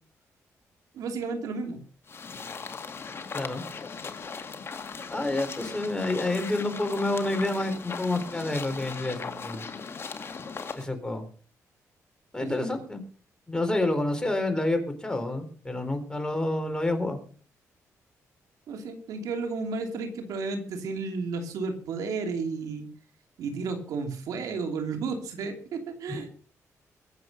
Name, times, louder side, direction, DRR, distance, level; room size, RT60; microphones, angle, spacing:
voice 1, 0.9-1.8 12.4-12.8 18.7-22.9 23.4-26.3, right 4 dB, 85° right, 5 dB, 2.9 m, -33 dB
sound 1, 2.1-10.9, left 5 dB, 45° left, 2.1 m, -38 dB
voice 2, 5.1-9.7 10.8-11.3 12.3-13.0 13.5-17.2 26.1-26.2, left 2 dB, 15° left, 6 dB, 4.2 m, -28 dB
22.5 x 7.7 x 5.3 m, 0.41 s
cardioid pair, 85°, 6 cm